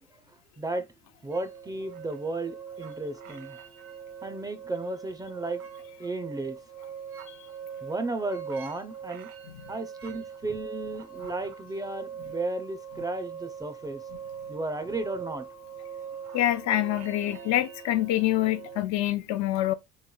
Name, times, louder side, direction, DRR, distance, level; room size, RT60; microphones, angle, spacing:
voice 1, 1.2-3.6 4.2-5.6 6.0-6.6 7.8-9.3 9.7-14.0 14.5-15.4, right 2 dB, 15° right, 0.5 m, -34 dB
sound 1, 1.3-18.8, right 7 dB, 50° right, 0.8 m, -42 dB
voice 2, 16.3-19.7, left 14 dB, 65° left, 0.5 m, -26 dB
3.7 x 3.1 x 2.2 m
cardioid pair, 110°, 30 cm